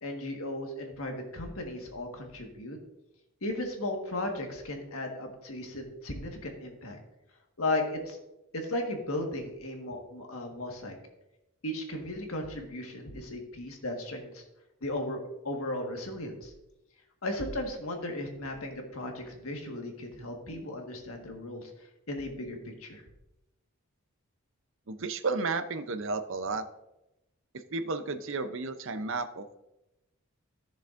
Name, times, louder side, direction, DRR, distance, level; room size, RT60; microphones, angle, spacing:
voice 1, 0.0-2.8 3.4-7.0 7.6-8.2 8.5-10.9 11.6-14.4 14.8-16.5 17.2-21.7 22.1-23.0, left 1 dB, 70° left, 3 dB, 1.5 m, -36 dB
voice 2, 24.9-26.7 27.5-29.6, right 3 dB, 60° right, 9 dB, 0.6 m, -33 dB
13.5 x 6.9 x 2.5 m, 0.93 s
head